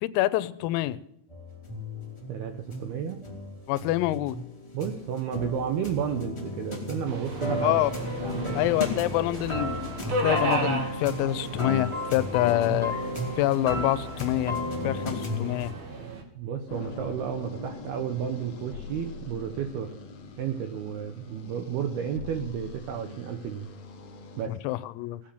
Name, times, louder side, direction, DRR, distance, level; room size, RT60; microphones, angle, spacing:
voice 1, 0.0-1.0 3.7-4.4 7.6-7.9 8.6-9.9 10.2-13.0 13.4-14.6 14.9-15.7 24.5-25.2, left 15 dB, 85° left, 16 dB, 3.5 m, -26 dB
sound 1, 1.3-15.7, left 1 dB, 10° left, 1.4 m, -34 dB
voice 2, 2.3-3.2 4.7-7.8 8.2-8.7 16.3-20.0 20.4-23.7 24.4-24.6, right 8 dB, 80° right, 6 dB, 2.3 m, -32 dB
Subway metro underground, 7.1-16.2, right 3 dB, 55° right, 3.7 m, -35 dB
sound 2, 16.7-24.5, left 3 dB, 70° left, 1.6 m, -43 dB
18.5 x 8.8 x 7.8 m, 0.72 s
omnidirectional pair, 6.0 m